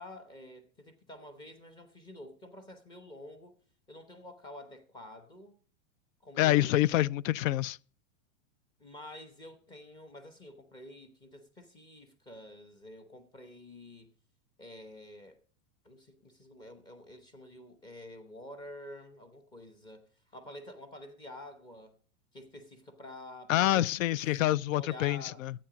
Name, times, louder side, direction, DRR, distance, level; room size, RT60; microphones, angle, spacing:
voice 1, 0.0-3.6 3.9-5.6 6.2-7.1 8.8-14.1 14.6-15.4 15.8-22.0 22.3-24.2 24.7-25.4, left 1 dB, 10° left, 0.9 m, -49 dB
voice 2, 6.4-7.8 23.5-25.5, left 14 dB, 85° left, 0.5 m, -27 dB
12.0 x 8.7 x 5.0 m
supercardioid pair, 170°, 38 cm